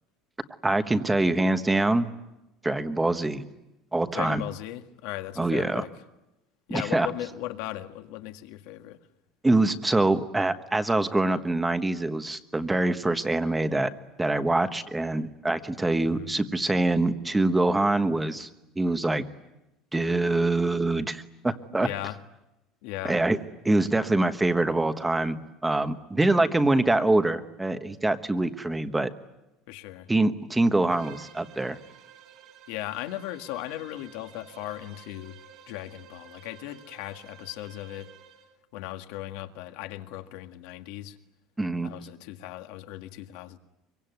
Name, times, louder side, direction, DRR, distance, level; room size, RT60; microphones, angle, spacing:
voice 1, 0.6-2.1 2.6-3.5 3.9-4.4 5.4-5.8 6.7-7.1 9.4-13.9 14.2-18.5 18.7-19.2 19.9-21.9 23.0-23.4 23.6-29.1 30.1-31.8 41.6-41.9, right 2 dB, 5° right, 9 dB, 1.2 m, -24 dB
voice 2, 4.1-5.9 6.7-9.0 16.1-16.3 21.8-22.2 22.8-23.2 29.7-30.1 32.7-35.4 35.7-38.1 38.7-41.2 41.8-43.6, left 15 dB, 70° left, 7 dB, 1.9 m, -37 dB
Bowed string instrument, 30.9-38.6, right 8 dB, 45° right, 2.1 m, -51 dB
25.5 x 23.5 x 9.4 m, 0.93 s
cardioid pair, 175°, 0 cm